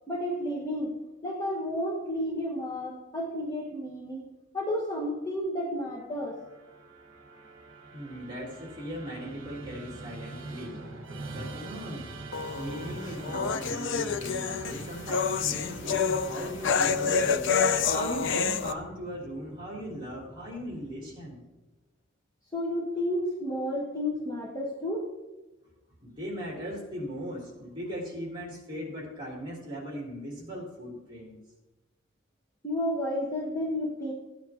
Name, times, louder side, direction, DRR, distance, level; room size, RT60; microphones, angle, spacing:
voice 1, 0.1-0.9 1.2-4.2 4.5-6.4 22.5-25.1 32.6-34.1, left 1 dB, 20° left, -3 dB, 1.2 m, -31 dB
Musical instrument, 6.1-21.4, right 2 dB, 60° right, 1.3 m, -44 dB
voice 2, 7.9-10.8 11.3-12.1 12.5-17.6 17.9-21.4 26.0-31.3, equal, 25° right, -4 dB, 3.4 m, -38 dB
sound 1, 12.3-18.7, left 6 dB, 60° left, 0.5 m, -28 dB
15.0 x 9.3 x 2.9 m, 1.1 s
head